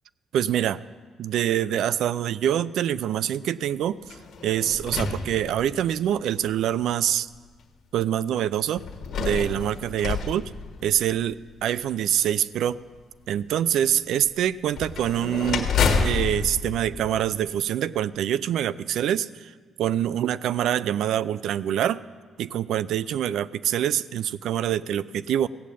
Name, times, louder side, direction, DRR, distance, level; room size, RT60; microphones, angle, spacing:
voice 1, 0.3-0.8 1.2-4.2 4.4-7.3 7.9-8.8 9.2-10.5 10.8-12.8 13.3-22.0 22.4-25.5, right 10 dB, 80° right, 19 dB, 0.4 m, -25 dB
sound 1, 4.0-6.0 6.8-6.9 8.8-11.3 14.7-17.8, left 5 dB, 65° left, 1.4 m, -29 dB
16.0 x 7.4 x 8.4 m, 1.5 s
cardioid pair, 90°, 0 cm